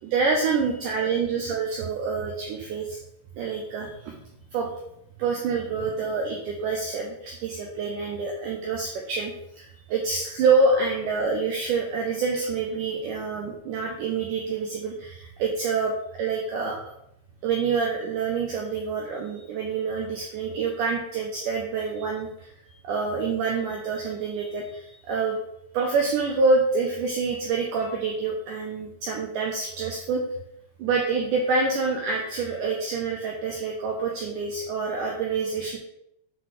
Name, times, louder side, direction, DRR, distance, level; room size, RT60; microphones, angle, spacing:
voice 1, 0.0-3.0 3.4-4.2 4.5-4.7 5.2-15.9 16.2-16.8 17.4-22.5 22.8-25.4 25.7-30.2 30.8-35.8, right 4 dB, 85° right, 0 dB, 1.8 m, -27 dB
7.6 x 3.9 x 3.2 m, 0.78 s
omnidirectional pair, 4.5 m